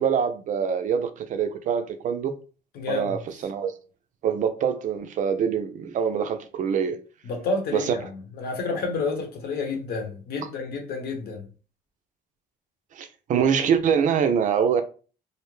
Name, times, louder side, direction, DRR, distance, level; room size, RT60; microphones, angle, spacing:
voice 1, 0.0-2.3 2.9-3.7 4.2-7.0 7.7-7.8 12.9-14.8, right 7 dB, 50° right, 0.4 m, -24 dB
voice 2, 2.7-3.2 7.2-11.5, left 3 dB, 65° left, 0.9 m, -30 dB
2.5 x 2.1 x 3.1 m
cardioid pair, 110°, 17 cm